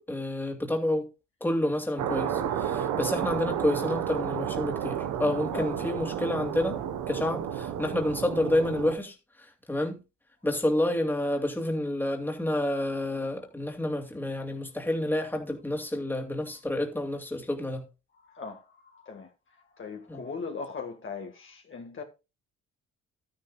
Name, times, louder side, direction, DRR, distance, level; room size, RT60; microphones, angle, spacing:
voice 1, 0.1-1.1 1.4-6.8 7.1-9.2 9.7-10.0 10.4-17.8 20.1-20.2, left 1 dB, 5° left, 2.5 m, -29 dB
sound 1, 2.0-9.0, right 9 dB, 80° right, 1.3 m, -31 dB
voice 2, 18.3-18.6 18.9-19.3 19.8-22.0, left 4 dB, 40° left, 1.9 m, -38 dB
12.5 x 10.5 x 2.4 m
cardioid pair, 90°, 30 cm